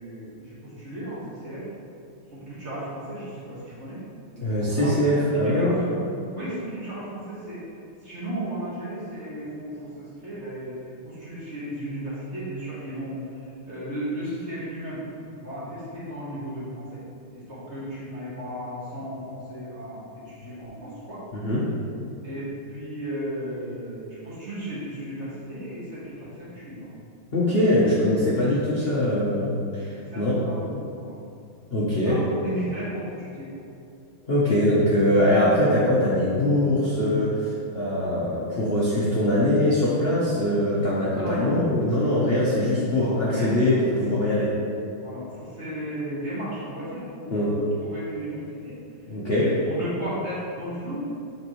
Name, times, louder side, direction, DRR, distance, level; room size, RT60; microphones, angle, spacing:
voice 1, 0.0-1.7 2.3-4.0 4.4-5.9 6.3-7.6 8.0-10.8 11.0-13.2 13.7-15.0 15.4-17.0 17.3-21.2 22.2-26.9 29.6-31.2 32.0-33.5 41.2-41.6 42.9-43.5 45.0-48.8 49.3-51.1, right 1 dB, 35° right, -9 dB, 1.6 m, -35 dB
voice 2, 4.4-5.8 21.3-21.6 27.3-30.4 31.7-32.1 34.3-44.5 47.3-47.4 49.1-49.4, left 1 dB, 60° left, -8 dB, 0.6 m, -22 dB
7.0 x 4.3 x 3.1 m, 2.5 s
omnidirectional pair, 2.3 m